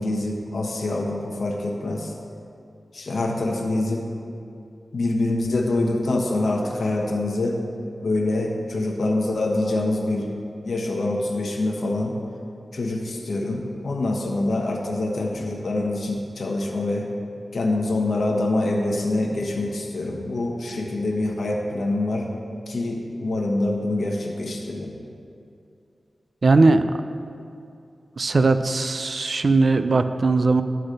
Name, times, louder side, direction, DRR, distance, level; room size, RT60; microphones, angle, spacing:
voice 1, 0.0-2.1 2.9-4.0 4.9-7.6 8.0-10.3 10.6-12.1 12.7-17.1 17.5-22.3 22.7-24.9, left 2 dB, 65° left, 0 dB, 1.1 m, -25 dB
voice 2, 26.4-26.9 28.2-30.6, right 3 dB, 50° right, 10 dB, 0.3 m, -19 dB
10.0 x 4.0 x 6.4 m, 2.6 s
wide cardioid pair, 110°, 0 cm